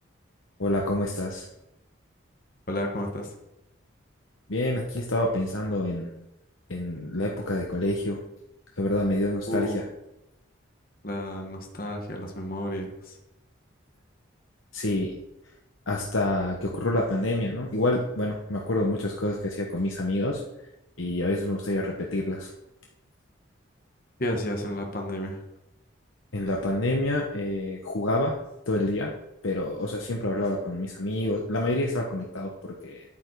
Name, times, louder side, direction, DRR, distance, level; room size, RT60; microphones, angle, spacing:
voice 1, 0.6-1.5 4.5-6.1 6.7-8.2 8.8-9.8 14.7-15.2 15.9-20.4 21.0-22.5 26.3-28.4 28.7-29.1 29.4-33.0, left 1 dB, 80° left, 0 dB, 1.2 m, -27 dB
voice 2, 2.7-3.3 9.5-9.8 11.0-13.2 24.2-25.4, left 1 dB, 45° left, 2 dB, 1.4 m, -31 dB
9.2 x 9.2 x 4.8 m, 0.88 s
head